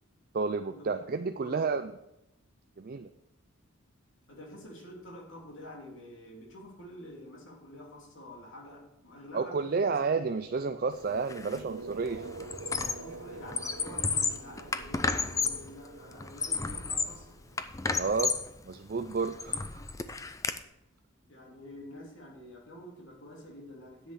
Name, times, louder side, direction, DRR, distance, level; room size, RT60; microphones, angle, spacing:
voice 1, 0.3-1.9 2.8-3.1 9.3-12.3 17.9-18.4 18.6-19.8, right 4 dB, 45° right, 8 dB, 0.4 m, -31 dB
voice 2, 1.4-1.7 4.3-9.9 10.2-10.3 12.9-17.4 21.3-24.1, left 1 dB, 60° left, -1 dB, 3.1 m, -48 dB
sound 1, 10.5-18.6, right 3 dB, 80° right, 0.8 m, -47 dB
Squeak, 11.3-11.6 11.9-13.1 13.4-15.7 16.2-17.2 17.6-18.5 19.0-20.6, left 4 dB, 15° left, 0.4 m, -32 dB
10.0 x 7.7 x 6.1 m, 0.84 s
head